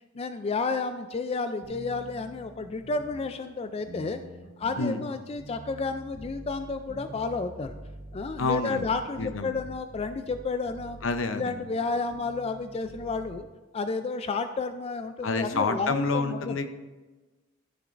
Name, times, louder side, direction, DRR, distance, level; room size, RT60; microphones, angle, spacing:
voice 1, 0.1-4.2 4.6-7.7 8.1-11.0 11.4-13.5 13.7-16.6, left 4 dB, 30° left, 9 dB, 0.3 m, -31 dB
sound 1, 1.6-13.4, right 1 dB, 90° right, 1.4 m, -46 dB
voice 2, 8.4-8.8 9.2-9.5 11.0-11.4 15.2-16.7, left 3 dB, 75° left, 8 dB, 0.7 m, -28 dB
13.5 x 6.9 x 2.5 m, 1.2 s
head